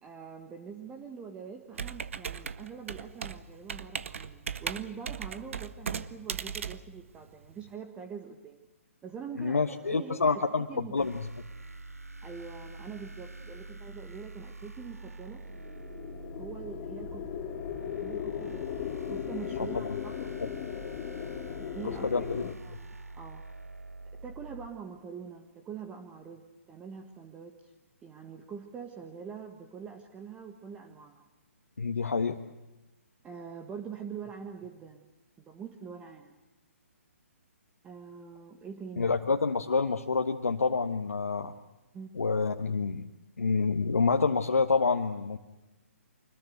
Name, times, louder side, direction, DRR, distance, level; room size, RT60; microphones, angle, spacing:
voice 1, 0.0-8.6 9.0-11.1 12.2-15.4 16.3-17.3 17.8-20.2 21.6-23.4 24.2-27.7 28.0-31.2 33.2-35.1 35.4-36.3 37.8-39.5 41.9-42.2, right 6 dB, 15° right, 5 dB, 1.6 m, -44 dB
Computer keyboard, 1.8-7.7, right 7 dB, 60° right, 1.1 m, -38 dB
voice 2, 9.4-11.3 22.0-22.5 31.8-32.4 39.0-41.5 42.1-43.1 43.4-45.4, left 4 dB, 75° left, 4 dB, 1.4 m, -27 dB
sound 1, 11.0-24.7, right 2 dB, 90° right, 1.4 m, -45 dB
sound 2, 15.5-22.5, left 10 dB, 30° left, 1.4 m, -38 dB
25.0 x 20.5 x 8.2 m, 1.1 s
figure-of-eight pair, 135°, 8 cm